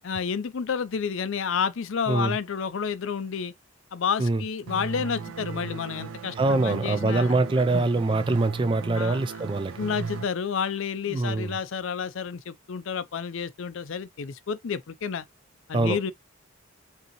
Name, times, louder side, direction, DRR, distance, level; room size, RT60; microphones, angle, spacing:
voice 1, 0.0-3.5 3.9-7.3 7.7-7.8 8.9-9.2 9.8-15.3 15.7-16.1, left 6 dB, 65° left, 0.5 m, -30 dB
voice 2, 2.1-2.4 4.2-4.4 6.4-9.7 11.1-11.6 15.7-16.1, right 2 dB, 25° right, 0.4 m, -24 dB
sound 1, 4.7-10.2, right 5 dB, 90° right, 0.6 m, -36 dB
5.4 x 2.7 x 2.9 m
head